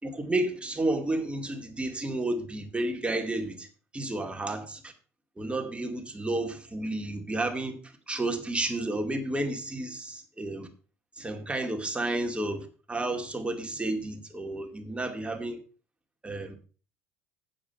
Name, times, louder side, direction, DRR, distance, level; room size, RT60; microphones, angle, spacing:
voice 1, 0.0-3.7 3.9-4.9 5.4-10.7 11.2-15.6 16.2-16.6, right 2 dB, 15° right, 2.3 m, -31 dB
8.4 x 7.6 x 5.7 m
hypercardioid pair, 65°, 8 cm